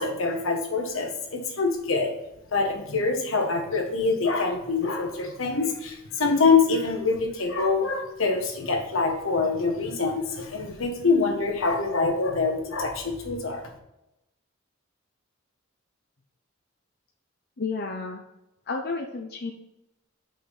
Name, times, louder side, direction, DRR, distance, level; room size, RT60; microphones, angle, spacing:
voice 1, 0.0-2.1 2.5-13.7, left 4 dB, 80° left, 3 dB, 1.4 m, -25 dB
voice 2, 17.6-18.2 18.7-19.5, left 4 dB, 50° left, 2 dB, 0.7 m, -31 dB
5.6 x 5.2 x 5.7 m, 0.90 s
head